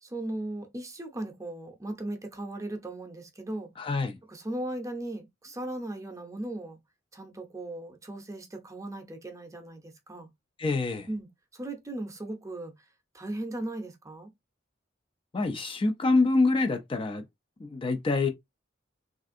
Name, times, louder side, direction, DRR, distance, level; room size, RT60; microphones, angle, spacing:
voice 1, 0.0-3.7 4.3-6.8 7.1-10.3 11.1-11.3 11.5-12.7 13.1-14.3, right 1 dB, 15° right, 0.6 m, -37 dB
voice 2, 3.8-4.2 10.6-11.1 15.3-17.2 17.6-18.3, left 3 dB, 30° left, 0.3 m, -26 dB
3.3 x 2.5 x 2.5 m
head